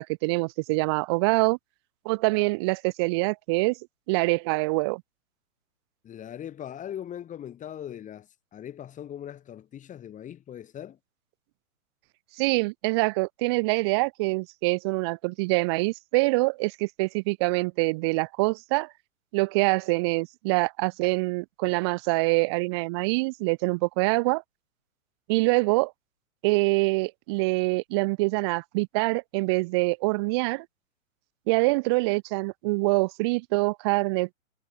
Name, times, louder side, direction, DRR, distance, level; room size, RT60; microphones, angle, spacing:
voice 1, 0.0-1.6 2.0-3.8 4.1-5.0 12.4-18.9 19.3-24.4 25.3-25.9 26.4-30.7 31.5-34.3, right 26 dB, 20° right, 0.6 m, -25 dB
voice 2, 6.0-11.0, left 10 dB, 20° left, 4.6 m, -40 dB
figure-of-eight pair, 115°, 42 cm